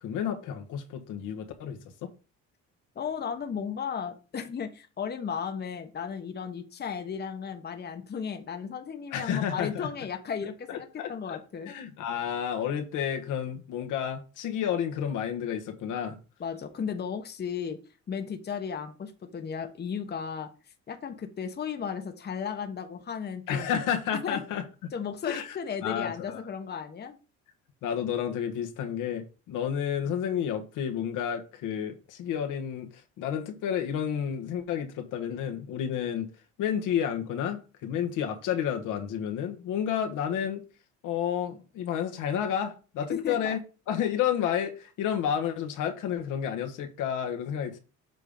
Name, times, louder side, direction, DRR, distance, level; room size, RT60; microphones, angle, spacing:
voice 1, 0.0-2.1 9.1-9.9 10.7-11.4 11.7-16.2 23.5-24.9 25.2-25.6 25.8-26.4 27.8-36.3 36.6-40.6 41.0-43.6 43.9-47.8, left 9 dB, 80° left, 1.4 m, -31 dB
voice 2, 2.9-11.7 16.4-17.8 18.1-20.5 20.9-23.7 24.1-24.4 24.9-27.2 43.1-43.6, left 7 dB, 35° left, 1.1 m, -35 dB
7.6 x 3.6 x 5.2 m
cardioid pair, 115°, 30 cm